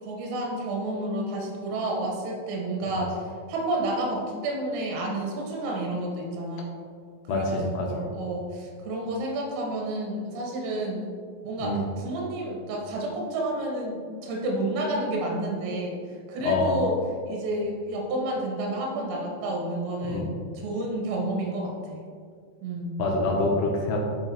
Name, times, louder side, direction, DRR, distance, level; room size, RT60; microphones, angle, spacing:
voice 1, 0.0-3.2 3.5-6.7 7.3-11.1 11.4-17.0 17.3-22.0 22.6-23.0, right 1 dB, 80° right, -1 dB, 3.9 m, -30 dB
voice 2, 7.3-8.1 11.6-11.8 16.4-16.8 20.1-20.3 23.0-24.1, left 2 dB, 90° left, -1 dB, 2.4 m, -26 dB
11.0 x 4.7 x 2.9 m, 2.1 s
omnidirectional pair, 5.9 m